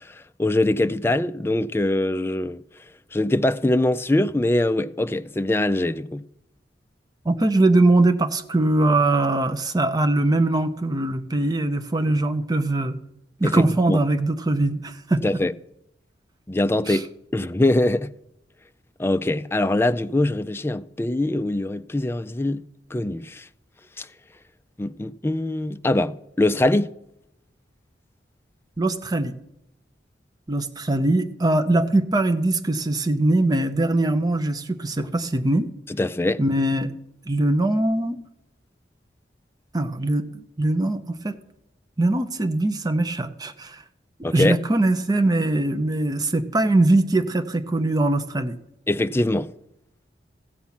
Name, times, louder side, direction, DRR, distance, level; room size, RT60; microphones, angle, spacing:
voice 1, 0.4-2.6 3.1-6.2 13.4-14.0 15.2-15.5 16.5-17.1 17.3-18.1 19.0-22.6 22.9-23.4 24.0-24.1 24.8-26.9 36.0-36.4 44.2-44.6 48.9-49.5, left 1 dB, 15° left, 0.3 m, -23 dB
voice 2, 7.2-13.0 13.4-15.4 16.9-17.0 28.8-29.3 30.5-35.7 36.4-36.9 37.3-38.2 39.7-40.3 40.6-41.4 42.0-43.8 44.3-48.6, right 2 dB, 20° right, 0.7 m, -21 dB
16.0 x 7.3 x 5.8 m
head